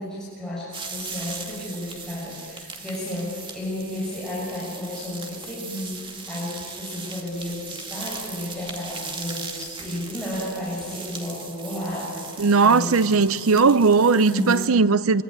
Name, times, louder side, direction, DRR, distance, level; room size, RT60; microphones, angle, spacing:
voice 1, 0.0-13.1 13.5-13.7 14.0-14.7, left 1 dB, 5° left, 6.6 m, -32 dB
sound 1, 0.7-14.7, right 4 dB, 25° right, 2.2 m, -38 dB
voice 2, 12.4-15.2, right 4 dB, 75° right, 0.7 m, -18 dB
24.5 x 24.5 x 9.8 m
head